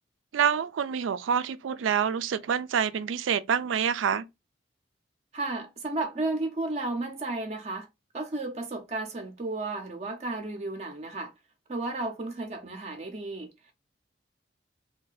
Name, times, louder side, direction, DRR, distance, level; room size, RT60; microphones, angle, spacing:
voice 1, 0.3-4.3, right 7 dB, 90° right, 0.4 m, -27 dB
voice 2, 5.3-7.9 8.1-11.3 11.7-13.5, right 2 dB, 35° right, 0.5 m, -33 dB
2.6 x 2.2 x 3.9 m
head